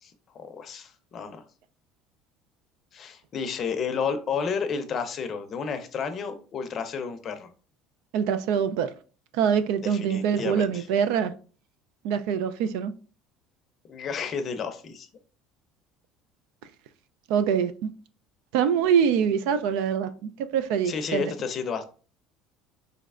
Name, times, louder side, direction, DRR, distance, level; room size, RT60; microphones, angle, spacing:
voice 1, 0.0-1.4 2.9-7.5 9.8-10.9 13.9-15.1 20.8-21.9, left 6 dB, 40° left, 0.5 m, -31 dB
voice 2, 8.1-8.9 9.3-11.3 12.0-12.9 17.3-17.9 18.5-21.3, right 7 dB, 80° right, 0.3 m, -24 dB
3.8 x 3.1 x 2.4 m
cardioid pair, 130°, 0 cm